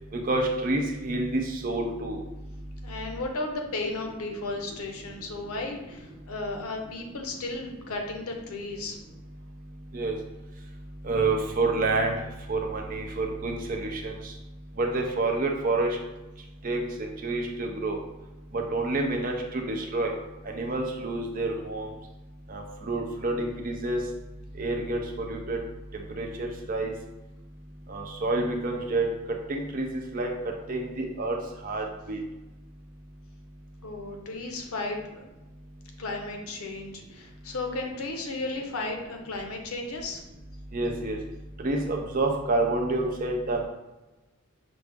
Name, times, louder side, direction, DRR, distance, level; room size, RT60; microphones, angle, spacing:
voice 1, 0.1-2.2 9.9-10.1 11.0-12.2 12.5-14.2 14.8-15.9 16.6-18.0 18.5-20.1 20.5-21.9 22.5-24.0 24.6-25.0 25.3-25.6 26.2-26.9 27.9-29.1 29.5-30.3 30.7-31.4 31.6-32.2 40.7-41.2 41.6-43.6, right 2 dB, 40° right, 2 dB, 0.6 m, -28 dB
voice 2, 2.8-9.0 33.8-35.2 36.0-40.2, left 2 dB, 90° left, 3 dB, 0.7 m, -34 dB
5.9 x 2.0 x 3.4 m, 1.1 s
head